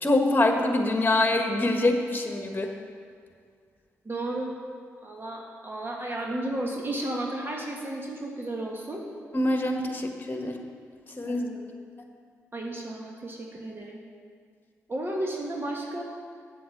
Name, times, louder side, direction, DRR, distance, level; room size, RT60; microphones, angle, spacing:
voice 1, 0.0-2.7 9.3-10.6 11.2-11.5, left 2 dB, 30° left, 4 dB, 1.5 m, -24 dB
voice 2, 4.1-4.5 5.0-9.0 11.3-11.7 12.5-14.0 14.9-16.0, right 1 dB, 35° right, -1 dB, 1.6 m, -33 dB
7.7 x 7.6 x 6.6 m, 2.1 s
hypercardioid pair, 40°, 7 cm